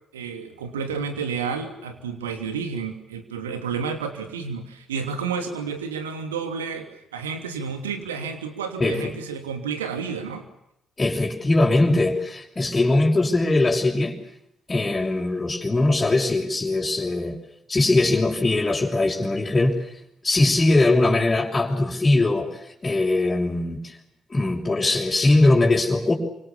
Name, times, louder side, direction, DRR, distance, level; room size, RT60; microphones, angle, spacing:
voice 1, 0.1-10.5, right 6 dB, 80° right, 7 dB, 3.0 m, -31 dB
voice 2, 8.8-9.1 11.0-14.2 14.7-17.4 17.7-19.8 20.2-24.0 24.3-26.1, left 2 dB, 25° left, -5 dB, 5.9 m, -21 dB
29.0 x 26.0 x 7.2 m, 0.79 s
figure-of-eight pair, 40°, 0 cm